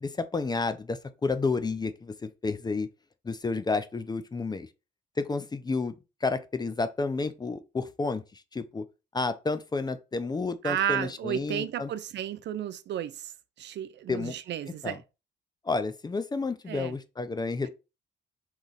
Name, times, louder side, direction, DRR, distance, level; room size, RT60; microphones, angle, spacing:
voice 1, 0.0-2.9 3.2-4.7 5.2-8.8 9.1-11.9 14.1-14.4 14.8-15.0 15.6-17.7, left 3 dB, 20° left, 0.4 m, -31 dB
voice 2, 10.6-13.3 13.6-15.0 16.7-16.9, right 10 dB, 60° right, 0.4 m, -33 dB
3.9 x 3.0 x 4.0 m
cardioid pair, 90°, 20 cm